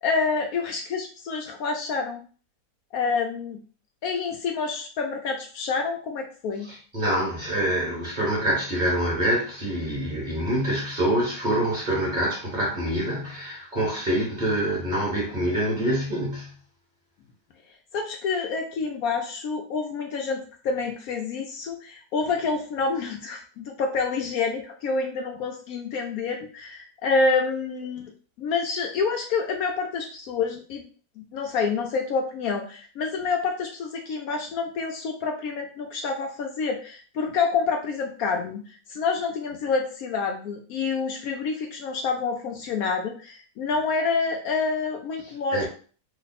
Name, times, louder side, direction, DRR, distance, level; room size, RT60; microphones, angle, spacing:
voice 1, 0.0-2.2 2.9-3.6 4.0-6.7 17.9-28.1 28.4-30.8 31.2-38.6 38.9-45.7, left 4 dB, 70° left, 1.0 m, -28 dB
voice 2, 6.7-16.5 45.5-45.7, right 1 dB, 30° right, 1.2 m, -26 dB
3.1 x 2.2 x 4.0 m
omnidirectional pair, 1.7 m